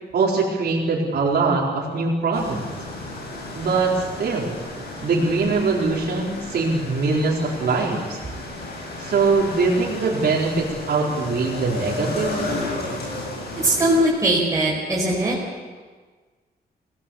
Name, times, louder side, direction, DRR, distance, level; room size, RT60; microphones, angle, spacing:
voice 1, 0.1-2.7 3.5-4.6 5.0-8.2 9.0-12.5, right 4 dB, 75° right, -4 dB, 4.2 m, -22 dB
sound 1, 2.3-14.0, left 2 dB, 85° left, 7.9 m, -33 dB
voice 2, 13.6-15.3, right 1 dB, 20° right, -5 dB, 5.1 m, -20 dB
27.5 x 18.5 x 7.2 m, 1.4 s
wide cardioid pair, 160°, 17 cm